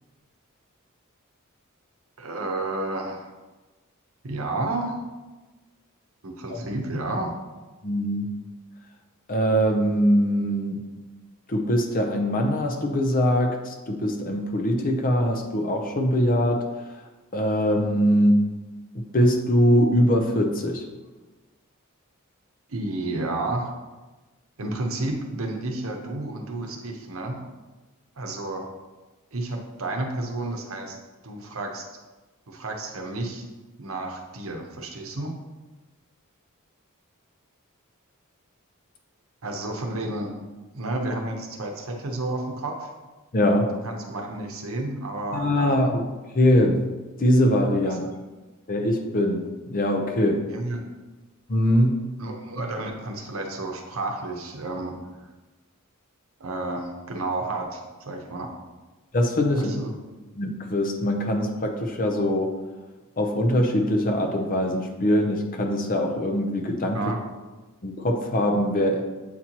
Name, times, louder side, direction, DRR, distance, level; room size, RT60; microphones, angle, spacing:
voice 1, 2.2-3.3 4.2-5.0 6.2-7.3 22.7-23.7 24.6-27.4 28.2-28.6 29.3-31.0 31.2-31.9 32.5-33.5 33.8-35.3 39.4-40.3 40.7-42.9 43.8-45.9 47.8-48.0 50.5-50.9 52.2-54.9 56.4-58.5 59.5-59.9 66.9-67.2, right 2 dB, 70° right, 3 dB, 0.9 m, -31 dB
voice 2, 7.8-8.4 9.3-10.8 11.5-16.7 17.3-18.4 18.9-20.8 43.3-43.7 45.3-46.1 46.3-46.8 47.2-48.1 48.7-50.4 51.5-52.0 59.1-59.7 60.4-62.5 63.2-67.0 67.8-69.0, equal, 40° left, 3 dB, 0.7 m, -22 dB
7.5 x 4.3 x 2.9 m, 1.2 s
head